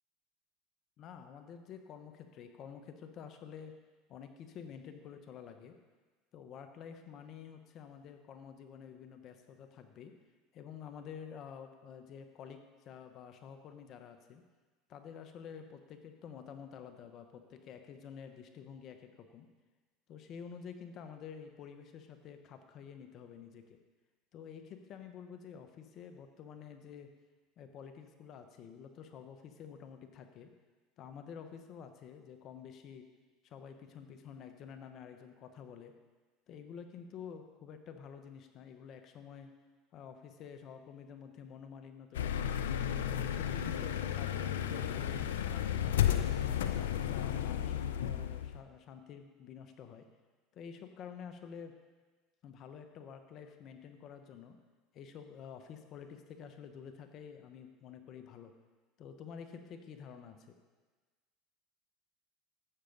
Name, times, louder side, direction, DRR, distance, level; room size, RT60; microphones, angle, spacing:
voice 1, 1.0-3.8 4.1-5.8 6.3-10.2 10.5-14.4 14.9-19.5 20.1-23.8 24.3-27.1 27.6-30.5 31.0-33.1 33.4-36.0 36.5-39.5 39.9-42.6 43.1-46.3 46.7-50.1 50.5-51.7 52.4-54.6 54.9-58.5 59.0-60.6, left 7 dB, 50° left, 7 dB, 1.1 m, -49 dB
sound 1, 42.1-48.6, left 10 dB, 90° left, 0.5 m, -33 dB
12.5 x 8.3 x 4.0 m, 1.3 s
hypercardioid pair, 90°, 0 cm